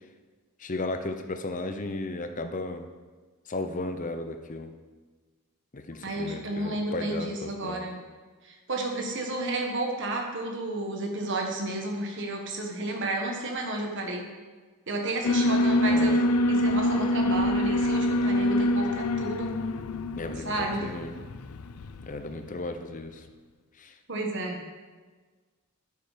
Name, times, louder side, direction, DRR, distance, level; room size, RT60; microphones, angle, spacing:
voice 1, 0.6-2.9 3.5-4.7 5.7-7.9 15.8-16.3 20.2-21.2 22.1-23.3 23.8-23.9, left 2 dB, 35° left, 7 dB, 0.7 m, -35 dB
voice 2, 6.0-8.0 8.4-14.3 14.9-16.2 16.5-19.5 20.4-20.8 24.1-24.6, right 2 dB, 55° right, 1 dB, 1.5 m, -31 dB
Alarm, 15.2-22.4, left 1 dB, 85° left, 0.5 m, -25 dB
9.7 x 6.7 x 5.0 m, 1.4 s
head